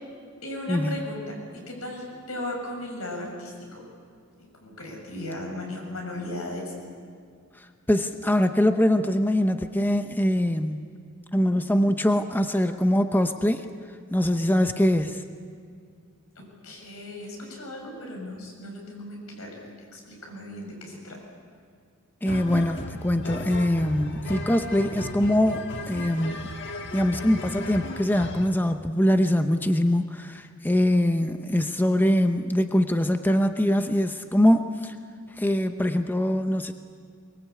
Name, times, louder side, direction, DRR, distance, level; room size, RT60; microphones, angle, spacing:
voice 1, 0.4-3.9 4.6-6.7 16.4-21.2, left 1 dB, 85° left, 0 dB, 7.2 m, -36 dB
voice 2, 7.9-10.9 11.3-13.7 14.1-15.2 22.2-26.5 26.9-34.9 35.4-36.7, left 1 dB, 10° left, 7 dB, 0.7 m, -23 dB
sound 1, 22.2-28.5, left 1 dB, 60° left, 1.5 m, -36 dB
23.0 x 22.0 x 8.5 m, 2.1 s
head